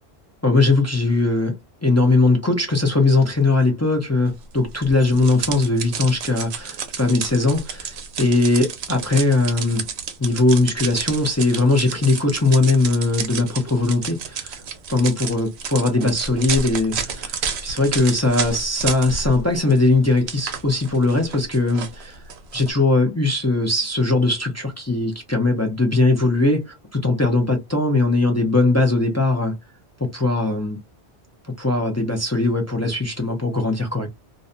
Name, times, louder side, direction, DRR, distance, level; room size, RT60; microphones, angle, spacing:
voice 1, 0.4-1.5 1.8-9.9 10.2-14.6 14.9-22.2 22.5-29.5 30.0-30.8 31.6-34.1, left 2 dB, 20° left, 0.4 m, -20 dB
sound 1, 4.8-19.4 19.7-22.7, right 6 dB, 75° right, 0.9 m, -31 dB
2.6 x 2.1 x 2.5 m
omnidirectional pair, 1.1 m